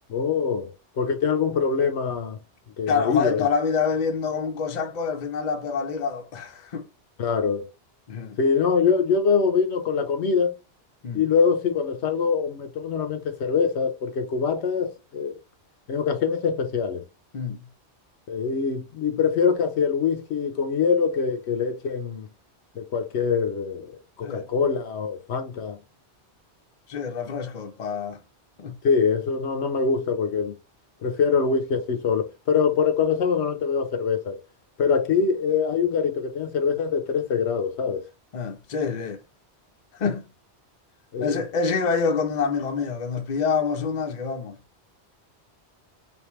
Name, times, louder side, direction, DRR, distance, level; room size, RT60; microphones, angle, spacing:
voice 1, 0.1-0.7 1.0-2.4 2.8-3.5 7.2-7.7 8.4-10.5 11.1-15.4 15.9-17.0 18.3-22.3 22.7-25.8 28.8-30.5 31.0-34.4 34.8-38.0 41.1-41.4, left 6 dB, 75° left, 1.0 m, -24 dB
voice 2, 2.9-6.9 8.1-8.4 11.0-11.2 17.3-17.7 24.2-24.5 26.9-28.2 28.6-28.8 38.3-39.2 39.9-40.3 41.2-44.6, left 5 dB, 45° left, 0.7 m, -27 dB
3.5 x 2.6 x 3.0 m
omnidirectional pair, 1.2 m